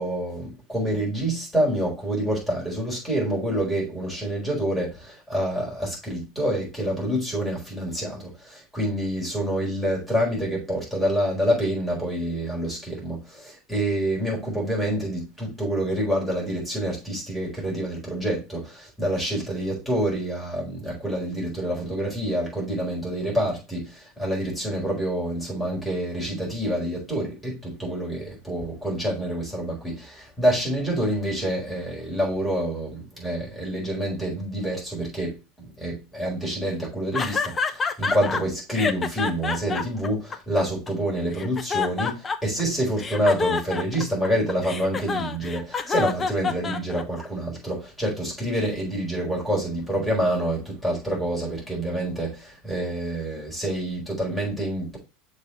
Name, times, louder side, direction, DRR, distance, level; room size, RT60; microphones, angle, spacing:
voice 1, 0.0-55.0, right 1 dB, 5° left, 4.7 m, -27 dB
sound 1, 37.1-38.4 38.7-40.9 41.3-42.6 43.0-47.3, left 5 dB, 20° left, 0.7 m, -27 dB
6.7 x 4.3 x 4.5 m
figure-of-eight pair, 75°, 0 cm